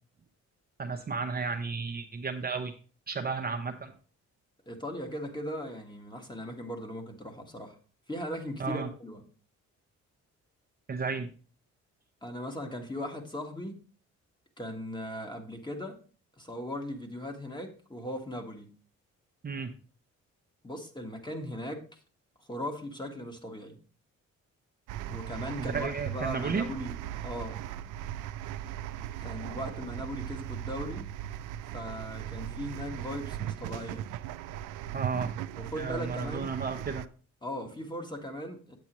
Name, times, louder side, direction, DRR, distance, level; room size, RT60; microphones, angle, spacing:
voice 1, 0.8-2.7 3.1-3.9 8.6-8.9 10.9-11.3 19.4-19.7 25.6-26.7 34.9-35.3 35.8-37.0, right 5 dB, 30° right, 4 dB, 0.8 m, -33 dB
voice 2, 4.7-7.8 8.1-9.2 12.2-13.8 14.6-16.0 16.4-18.7 20.6-22.0 22.5-23.8 25.1-27.0 27.2-27.6 29.2-31.1 31.7-34.1 35.6-36.5 37.4-38.8, equal, 15° left, 4 dB, 1.6 m, -38 dB
sound 1, 24.9-37.1, right 11 dB, 85° right, 0.5 m, -38 dB
8.4 x 8.1 x 3.0 m, 0.39 s
cardioid pair, 90°, 30 cm